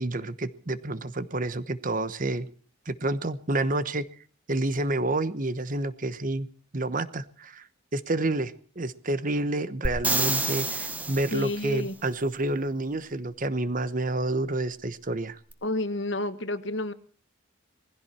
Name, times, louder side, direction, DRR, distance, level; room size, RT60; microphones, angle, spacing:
voice 1, 0.0-2.5 2.9-4.1 4.5-6.5 6.7-7.7 7.9-15.4, right 2 dB, 40° right, 1.1 m, -29 dB
sound 1, 9.8-11.7 15.5-15.6, right 2 dB, 10° right, 1.5 m, -28 dB
voice 2, 11.3-11.9 15.6-16.9, left 2 dB, 65° left, 1.4 m, -30 dB
20.5 x 15.5 x 4.4 m
head